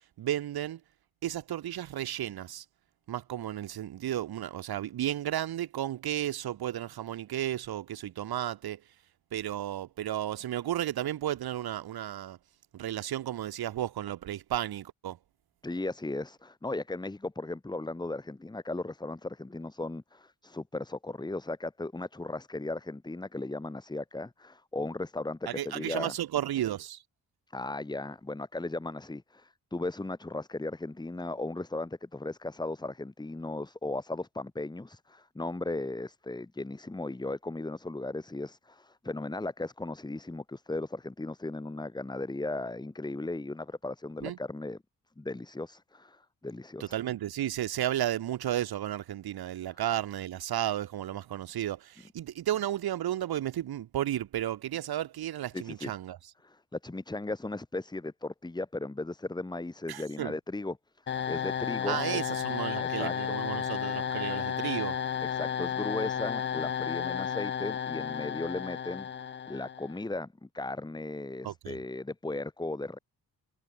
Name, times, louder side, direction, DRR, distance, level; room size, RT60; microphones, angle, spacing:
voice 1, 0.2-0.8 1.2-2.6 3.1-8.8 9.3-12.4 12.7-15.2 25.5-27.0 44.2-44.4 46.8-56.2 59.9-60.3 61.9-65.0 71.4-71.7, right 12 dB, 80° right, 1.2 m, -33 dB
voice 2, 15.6-26.1 27.5-44.8 45.2-47.0 55.5-55.9 56.4-60.8 61.0-62.2 62.8-63.1 65.2-69.1 69.5-73.0, left 2 dB, 10° left, 1.1 m, -36 dB
sound 1, 61.1-70.0, left 8 dB, 30° left, 0.4 m, -33 dB
cardioid pair, 70°, 37 cm